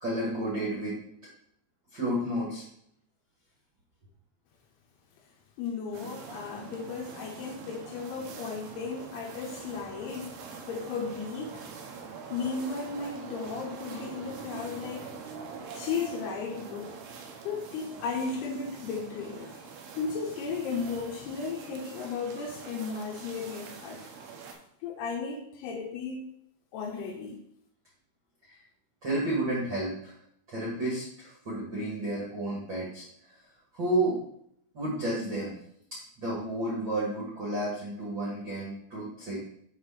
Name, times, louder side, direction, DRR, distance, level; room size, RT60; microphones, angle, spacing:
voice 1, 0.0-0.9 1.9-2.6 29.0-30.1 30.5-33.0 33.7-34.2 34.7-35.5 36.2-39.4, right 1 dB, 90° right, -6 dB, 1.0 m, -31 dB
voice 2, 5.6-11.6 12.3-15.1 15.7-17.0 17.4-19.6 19.9-24.1 24.5-26.3 26.7-27.4, left 5 dB, 75° left, -1 dB, 2.5 m, -35 dB
sound 1, 5.9-24.5, right 5 dB, 75° right, 2.5 m, -44 dB
7.8 x 3.6 x 5.7 m, 0.71 s
omnidirectional pair, 5.7 m